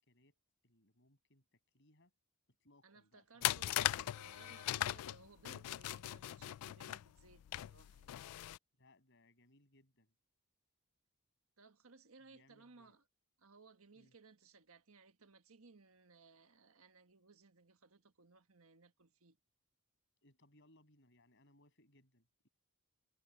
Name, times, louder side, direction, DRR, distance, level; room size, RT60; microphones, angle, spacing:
voice 1, 0.1-0.4 0.6-2.1 2.5-4.2 8.8-10.1 12.2-13.0 13.9-14.1 20.2-22.5, left 1 dB, 55° left, 6.7 m, -69 dB
voice 2, 2.8-8.1 11.6-13.0 13.4-19.4, right 4 dB, 70° right, 1.5 m, -62 dB
sound 1, 3.4-8.6, left 14 dB, 85° left, 0.3 m, -39 dB
head